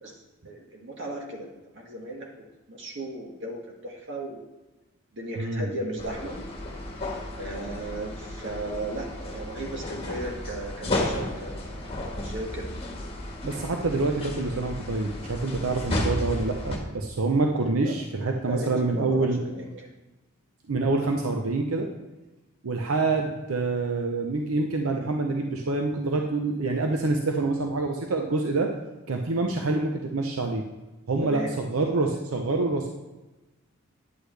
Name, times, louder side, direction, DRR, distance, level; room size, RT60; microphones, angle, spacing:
voice 1, 0.4-2.3 2.7-4.4 5.1-6.4 7.4-12.7 17.8-17.9 18.5-19.9 31.2-31.5, right 1 dB, 60° right, -1 dB, 1.8 m, -36 dB
voice 2, 5.4-5.7 13.4-19.4 20.7-21.9 22.6-28.7 29.1-30.6 31.1-32.9, right 3 dB, 90° right, 3 dB, 0.7 m, -26 dB
sound 1, 6.0-16.8, left 1 dB, 25° left, 1.5 m, -33 dB
9.7 x 8.2 x 3.3 m, 1.1 s
head